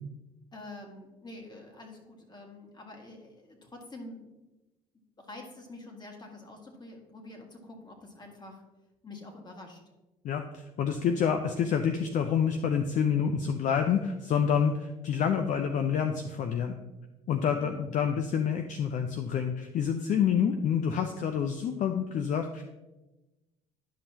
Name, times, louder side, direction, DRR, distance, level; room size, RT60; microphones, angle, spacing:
voice 1, 0.5-4.3 5.2-8.6 9.0-9.8 17.5-17.8, left 2 dB, 30° left, 2 dB, 1.9 m, -47 dB
voice 2, 10.2-16.8 17.3-22.6, left 7 dB, 55° left, 6 dB, 0.6 m, -28 dB
11.0 x 5.4 x 2.9 m, 1.0 s
supercardioid pair, 85°, 15 cm